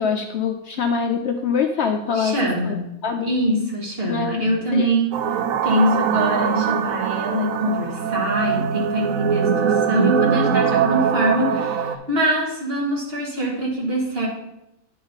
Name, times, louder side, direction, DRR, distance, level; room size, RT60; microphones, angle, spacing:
voice 1, 0.0-2.4 2.6-2.8 3.0-3.3 4.1-4.4 4.7-4.9, left 6 dB, 65° left, 4 dB, 0.7 m, -23 dB
voice 2, 2.1-2.9 3.2-5.2 5.6-14.3, equal, 45° right, -1 dB, 1.8 m, -23 dB
sound 1, 5.1-12.0, right 7 dB, 75° right, 1.0 m, -22 dB
9.5 x 5.1 x 4.0 m, 0.86 s
omnidirectional pair, 1.5 m